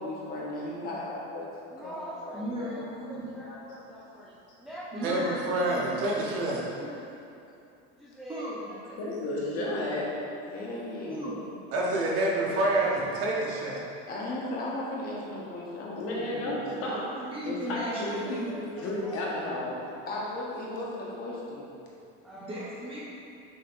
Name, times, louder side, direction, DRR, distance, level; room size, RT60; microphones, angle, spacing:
voice 1, 0.0-2.4 2.8-3.0 10.4-11.4 14.1-16.8 20.1-21.7, left 1 dB, 25° left, -4 dB, 0.9 m, -36 dB
voice 2, 1.7-4.3 4.6-5.3 7.9-9.0 12.3-12.7 13.1-13.2 17.5-19.2 19.5-19.6 22.2-22.7, equal, ahead, -9 dB, 0.5 m, -43 dB
voice 3, 2.3-3.3 4.9-5.8 6.7-6.9 8.3-8.7 11.1-11.4 16.8-18.9 22.3-23.0, equal, 15° right, -6 dB, 1.0 m, -37 dB
voice 4, 5.0-6.6 11.7-13.8, right 2 dB, 45° right, -3 dB, 1.0 m, -27 dB
voice 5, 9.0-10.1 15.8-17.0 17.5-18.4 18.8-19.8, left 1 dB, 45° left, -5 dB, 1.4 m, -32 dB
6.4 x 6.3 x 2.6 m, 2.7 s
cardioid pair, 160°, 33 cm